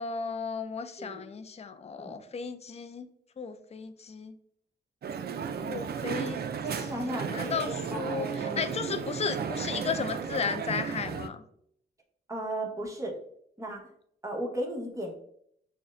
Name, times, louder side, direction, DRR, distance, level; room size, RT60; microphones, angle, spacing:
voice 1, 0.0-3.1 3.4-4.3 5.6-6.4 6.8-11.4, left 5 dB, 30° left, 10 dB, 0.4 m, -35 dB
Crowd, 5.0-11.3, right 6 dB, 50° right, 0.4 m, -34 dB
voice 2, 6.6-7.6 7.9-8.6 12.3-13.1 13.6-13.8 14.2-15.2, right 1 dB, 15° right, 0 dB, 1.1 m, -35 dB
6.2 x 2.1 x 2.5 m, 0.67 s
cardioid pair, 70°, 20 cm